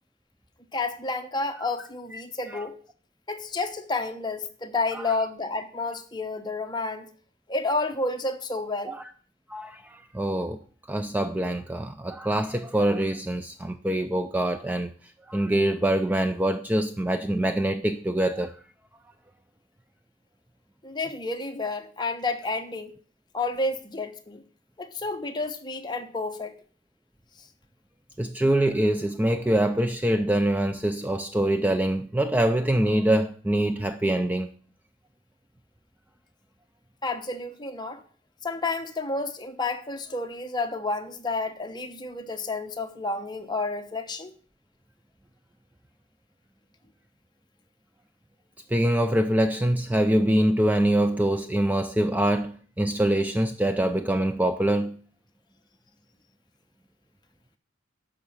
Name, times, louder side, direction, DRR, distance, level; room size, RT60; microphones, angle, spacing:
voice 1, 0.7-2.8 3.3-7.1 7.5-9.0 20.8-22.9 23.3-24.4 24.8-26.5 37.0-38.0 38.4-44.3, left 3 dB, 20° left, 1.0 m, -30 dB
voice 2, 9.5-10.6 10.9-14.9 15.3-18.6 28.2-34.5 48.7-55.0, right 1 dB, 10° right, 0.4 m, -24 dB
12.5 x 5.2 x 7.2 m
head